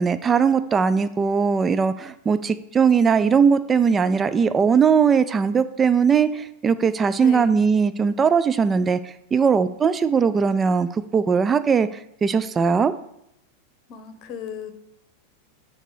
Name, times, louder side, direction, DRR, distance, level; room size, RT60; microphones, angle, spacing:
voice 1, 0.0-12.9, right 6 dB, 20° right, 13 dB, 0.3 m, -20 dB
voice 2, 7.2-7.5 13.9-14.7, left 6 dB, 40° left, 8 dB, 0.9 m, -35 dB
6.5 x 4.1 x 4.8 m, 0.78 s
figure-of-eight pair, 90°, 0 cm